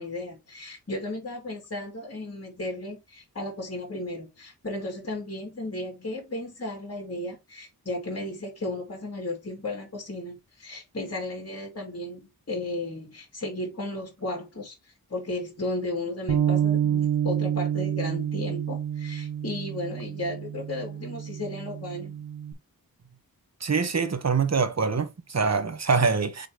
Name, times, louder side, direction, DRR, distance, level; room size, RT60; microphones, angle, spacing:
voice 1, 0.0-14.8 15.1-22.2, left 1 dB, 40° left, 2.7 m, -34 dB
Bass guitar, 16.3-22.5, right 9 dB, 85° right, 1.4 m, -28 dB
voice 2, 23.6-26.5, right 5 dB, 45° right, 1.0 m, -24 dB
7.5 x 3.8 x 3.4 m
wide cardioid pair, 110°, 36 cm